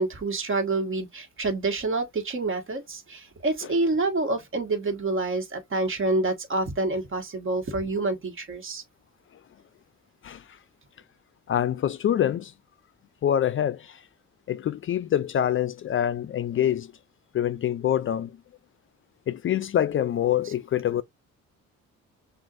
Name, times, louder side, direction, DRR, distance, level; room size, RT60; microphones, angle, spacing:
voice 1, 0.0-8.8 20.4-20.5, right 2 dB, 40° right, 1.6 m, -27 dB
voice 2, 11.5-12.5 13.2-14.0 14.5-16.9 17.3-18.3 19.3-21.0, left 10 dB, 45° left, 0.4 m, -25 dB
6.1 x 2.5 x 2.5 m
cardioid pair, 90°, 30 cm